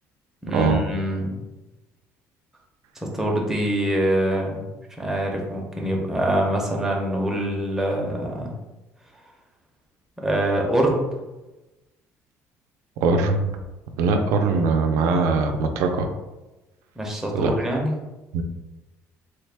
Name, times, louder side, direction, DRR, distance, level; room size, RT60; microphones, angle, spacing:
voice 1, 0.4-1.4 3.0-4.7 5.0-8.5 10.2-11.0 17.0-17.9, right 1 dB, 5° right, -1 dB, 0.5 m, -24 dB
voice 2, 13.0-13.6 14.0-16.1 17.3-17.5 18.3-18.4, right 4 dB, 75° right, 5 dB, 0.4 m, -21 dB
3.2 x 2.1 x 3.3 m, 1.1 s
cardioid pair, 155°, 6 cm